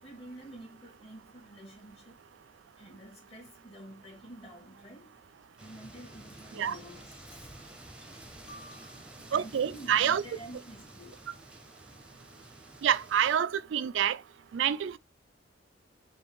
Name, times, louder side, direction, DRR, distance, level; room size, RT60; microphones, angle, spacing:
voice 1, 0.0-2.2 2.8-5.2 5.6-7.7 8.0-11.3, right 1 dB, 30° left, 1.8 m, -49 dB
sound 1, 5.6-13.4, right 1 dB, 5° right, 0.7 m, -51 dB
voice 2, 9.3-10.2 12.8-14.2 14.5-15.0, right 9 dB, 80° right, 0.4 m, -27 dB
5.2 x 2.3 x 3.5 m
head